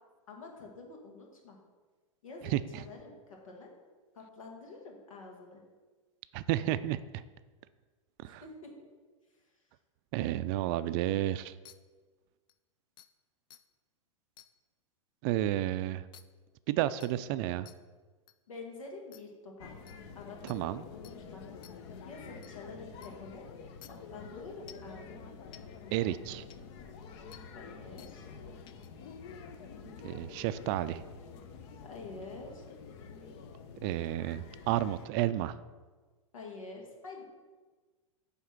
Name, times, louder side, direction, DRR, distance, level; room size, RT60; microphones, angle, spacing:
voice 1, 0.3-1.6 2.2-3.7 4.2-5.6 8.2-8.7 18.5-19.7 20.2-21.4 22.0-23.4 23.9-25.3 27.5-28.3 31.8-32.7 36.3-37.3, left 3 dB, 85° left, 0 dB, 1.8 m, -47 dB
voice 2, 2.4-2.8 6.3-7.2 8.2-8.4 10.1-11.6 15.2-16.1 16.7-17.7 20.4-20.8 25.9-26.5 29.8-31.0 33.8-35.6, right 14 dB, 45° right, 14 dB, 0.4 m, -31 dB
sound 1, 11.6-11.7 12.5-12.6 13.0-13.1 13.5-13.6 14.4-14.5 16.1-16.2 17.0-17.1 17.6-17.7 18.3-18.4 19.1-19.2 19.9-20.0 20.5-20.6 21.0-21.1 21.6-21.7 22.4-22.5 23.0-23.1 23.8-23.9 24.7-24.9 25.5-25.6 26.5-26.6 27.3-27.4 28.0-28.1 28.7-28.9, left 11 dB, 25° left, 0.4 m, -53 dB
sound 2, 19.6-35.1, left 5 dB, 55° left, 0.8 m, -48 dB
9.3 x 3.5 x 5.8 m, 1.4 s
hypercardioid pair, 110°, 17 cm